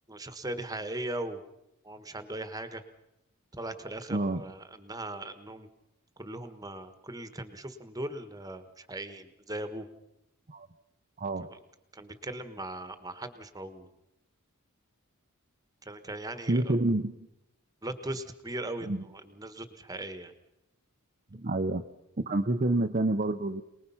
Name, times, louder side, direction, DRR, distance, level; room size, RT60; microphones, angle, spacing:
voice 1, 0.1-1.4 1.8-2.8 3.5-5.7 6.2-9.9 11.4-11.6 11.9-13.9 15.8-16.8 17.8-20.3, right 1 dB, 15° right, 9 dB, 1.4 m, -39 dB
voice 2, 4.1-4.4 10.5-10.7 11.2-11.5 16.5-17.2 18.9-19.0 21.3-21.8 22.2-23.6, right 2 dB, 35° right, 4 dB, 0.7 m, -28 dB
27.5 x 20.0 x 5.7 m, 0.89 s
head